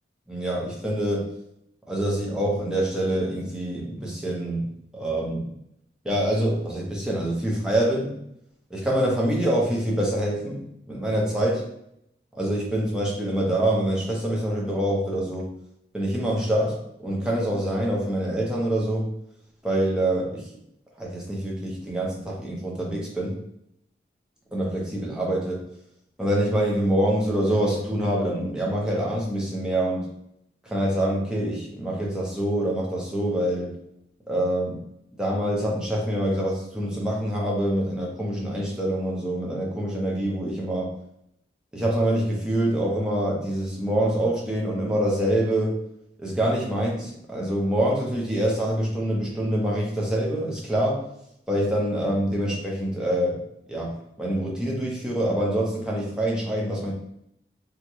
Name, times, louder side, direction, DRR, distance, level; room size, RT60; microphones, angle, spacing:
voice 1, 0.3-1.3 1.9-4.7 4.9-5.5 6.0-8.2 8.7-10.6 10.9-11.7 12.3-15.5 15.9-19.1 19.6-20.5 21.0-23.4 24.5-25.6 26.2-30.1 30.6-33.7 34.3-34.8 35.2-40.9 41.7-45.8 46.2-51.0 51.5-53.4 53.7-56.9, right 1 dB, 5° right, -4 dB, 0.6 m, -25 dB
3.5 x 2.1 x 3.0 m, 0.76 s
head